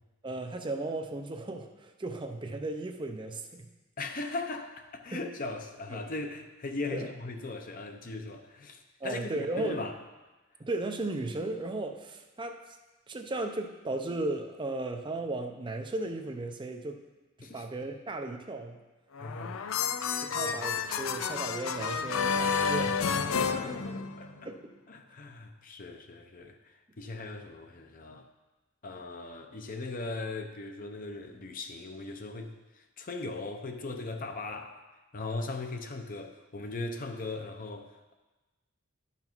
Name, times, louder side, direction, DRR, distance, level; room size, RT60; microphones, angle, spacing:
voice 1, 0.2-3.7 5.1-5.3 5.9-6.0 6.9-7.1 9.0-9.8 10.6-12.6 13.1-17.0 17.4-18.8 20.2-23.0 24.4-24.7, right 2 dB, 25° right, 4 dB, 0.6 m, -35 dB
voice 2, 4.0-9.9 17.4-17.6 19.2-19.6 20.0-21.1 23.4-24.3 24.9-26.5 27.0-28.3 28.8-32.5 33.0-34.8 35.1-38.1, left 3 dB, 45° left, 5 dB, 0.8 m, -39 dB
sound 1, 19.1-24.5, left 6 dB, 90° left, 0.5 m, -30 dB
11.0 x 5.8 x 4.5 m, 1.1 s
head